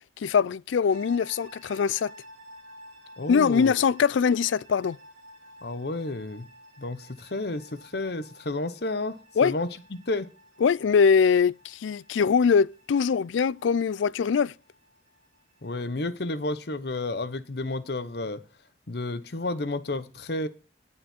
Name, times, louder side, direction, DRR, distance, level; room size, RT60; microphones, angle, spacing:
voice 1, 0.2-2.1 3.3-5.0 9.4-9.5 10.6-14.5, left 6 dB, 90° left, 0.4 m, -22 dB
sound 1, 0.9-15.9, equal, 80° right, 3.1 m, -52 dB
voice 2, 3.2-3.7 5.6-6.5 6.8-9.2 9.4-10.3 15.6-18.4 18.9-20.5, left 2 dB, 60° left, 0.9 m, -31 dB
9.2 x 8.7 x 4.4 m
head